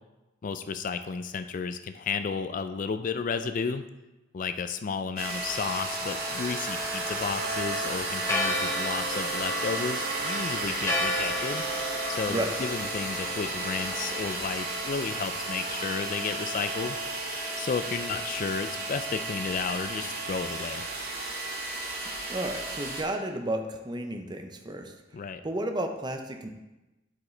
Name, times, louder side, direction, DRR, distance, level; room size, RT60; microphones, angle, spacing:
voice 1, 0.4-3.8 4.3-11.6 12.1-17.0 17.6-20.8 25.1-25.4, left 5 dB, 45° left, 10 dB, 0.4 m, -32 dB
sound 1, 5.2-23.0, right 2 dB, 55° right, 2.1 m, -33 dB
Church bell, 8.3-14.5, left 1 dB, 15° left, 0.8 m, -34 dB
voice 2, 22.3-24.9 25.4-26.5, right 1 dB, 25° right, 5 dB, 0.7 m, -32 dB
12.0 x 4.9 x 3.3 m, 1.0 s
head